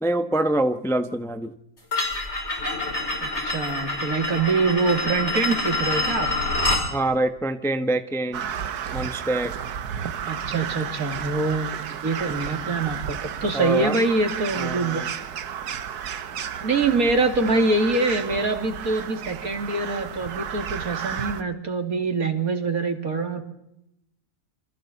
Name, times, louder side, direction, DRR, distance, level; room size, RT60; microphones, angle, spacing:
voice 1, 0.0-1.5 6.9-8.5 8.9-9.5 13.5-14.0 14.6-15.1, right 1 dB, ahead, 8 dB, 0.8 m, -25 dB
sound 1, 1.9-6.9, left 2 dB, 40° left, 5.5 m, -26 dB
voice 2, 3.2-6.3 10.2-11.7 12.0-15.1 16.6-23.4, right 3 dB, 60° right, 5 dB, 2.9 m, -24 dB
Crow, 8.3-21.4, right 8 dB, 75° right, 1.5 m, -32 dB
28.0 x 26.0 x 4.1 m, 0.84 s
omnidirectional pair, 1.7 m